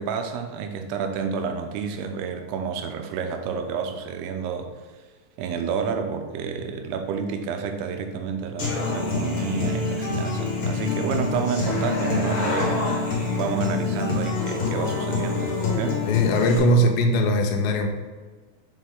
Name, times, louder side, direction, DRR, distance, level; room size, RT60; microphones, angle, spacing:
voice 1, 0.0-4.7 5.4-12.8 13.4-16.1, right 6 dB, 90° right, 5 dB, 2.7 m, -29 dB
Human voice / Acoustic guitar, 8.6-16.6, left 4 dB, 50° left, 1.7 m, -26 dB
voice 2, 16.1-17.9, equal, 75° left, 3 dB, 2.2 m, -20 dB
6.4 x 4.5 x 3.7 m, 1.4 s
omnidirectional pair, 4.5 m